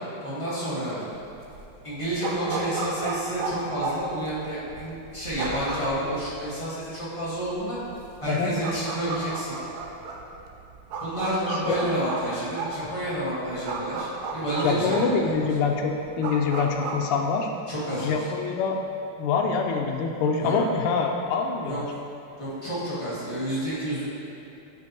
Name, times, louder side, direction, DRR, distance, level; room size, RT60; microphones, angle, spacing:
voice 1, 0.2-1.1 1.8-7.8 8.2-9.6 11.0-15.5 17.7-18.3 20.4-20.5 21.6-21.8 22.4-24.1, right 1 dB, 20° left, -11 dB, 1.2 m, -30 dB
sound 1, 1.1-17.0, right 3 dB, 80° right, 0.9 m, -34 dB
voice 2, 14.6-17.5 18.0-18.8 19.2-21.8, left 5 dB, 85° left, 2 dB, 1.5 m, -25 dB
8.1 x 5.2 x 2.9 m, 2.9 s
omnidirectional pair, 2.4 m